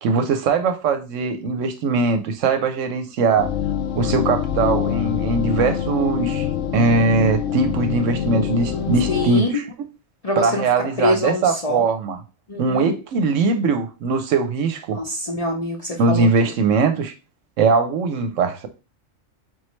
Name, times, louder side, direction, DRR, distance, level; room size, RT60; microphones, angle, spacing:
voice 1, 0.0-3.5 4.0-6.5 6.7-9.6 10.4-12.2 12.6-15.0 16.0-17.1 17.6-18.7, right 4 dB, 70° right, 0.9 m, -20 dB
sound 1, 3.4-9.3, left 9 dB, 65° left, 0.9 m, -25 dB
voice 2, 9.1-9.5 10.2-11.9 12.5-12.9 14.9-16.5, left 1 dB, 35° left, 0.6 m, -25 dB
4.1 x 3.1 x 3.0 m
omnidirectional pair, 1.4 m